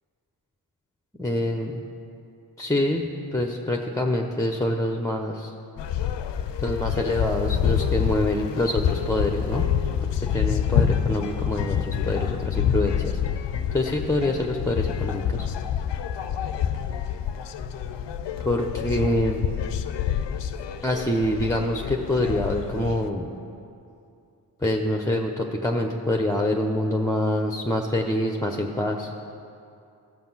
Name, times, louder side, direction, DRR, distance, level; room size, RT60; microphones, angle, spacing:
voice 1, 1.2-1.8 2.6-3.1 3.3-5.5 6.6-9.6 10.0-13.2 13.7-15.5 18.4-19.5 20.8-23.3 24.6-29.1, left 1 dB, 10° left, 2 dB, 0.9 m, -25 dB
sound 1, 5.8-23.1, left 8 dB, 75° left, 0.6 m, -27 dB
15.0 x 5.9 x 5.7 m, 2.6 s
supercardioid pair, 45°, 42 cm